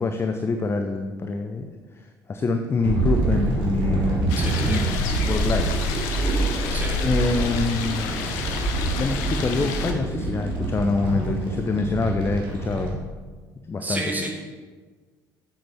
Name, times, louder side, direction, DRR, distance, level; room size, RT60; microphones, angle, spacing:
voice 1, 0.0-1.7 2.0-4.3 4.6-6.5 7.0-8.2 8.9-13.0 13.7-14.0, left 3 dB, 25° left, 6 dB, 0.5 m, -26 dB
sound 1, 2.8-12.9, right 2 dB, 50° right, 2.1 m, -26 dB
sound 2, 4.3-9.9, left 6 dB, 60° left, 0.8 m, -32 dB
voice 2, 4.4-4.8 6.7-7.0 13.8-14.3, right 2 dB, 15° right, 1 dB, 1.6 m, -30 dB
8.5 x 7.7 x 3.5 m, 1.4 s
figure-of-eight pair, 55°, 11 cm